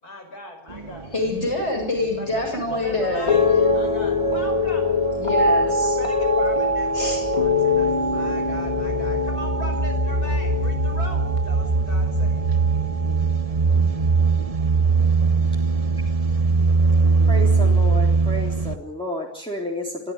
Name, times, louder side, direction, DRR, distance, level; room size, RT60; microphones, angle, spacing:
voice 1, 0.0-1.1 2.2-4.9 5.4-12.4, left 1 dB, 85° left, 5 dB, 6.5 m, -39 dB
sound 1, 0.7-1.0 1.3-4.4 6.3-6.5 7.2-18.8, right 4 dB, 25° right, 1.3 m, -21 dB
voice 2, 1.1-3.4 5.2-6.0 6.9-7.2, left 2 dB, 45° left, 3 dB, 8.3 m, -26 dB
sound 2, 3.3-13.6 13.9-14.5, left 2 dB, 20° left, 1.8 m, -23 dB
voice 3, 17.3-20.1, equal, 5° left, -2 dB, 3.6 m, -31 dB
26.0 x 15.5 x 9.8 m, 0.69 s
omnidirectional pair, 1.6 m